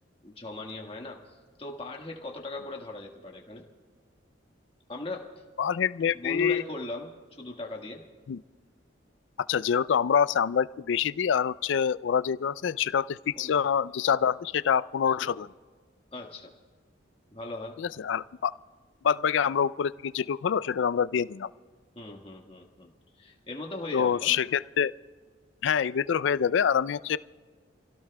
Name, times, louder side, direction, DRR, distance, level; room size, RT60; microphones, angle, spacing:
voice 1, 0.2-3.6 4.9-5.4 6.1-8.1 13.3-13.6 15.2-15.3 16.1-16.5 17.3-17.8 21.9-24.4, left 2 dB, 30° left, 1 dB, 1.5 m, -39 dB
voice 2, 5.6-6.6 8.3-8.4 9.5-15.5 17.8-18.5 19.0-21.5 23.9-24.9 25.6-27.2, left 7 dB, 70° left, 17 dB, 0.3 m, -26 dB
29.0 x 17.0 x 2.2 m, 1.5 s
head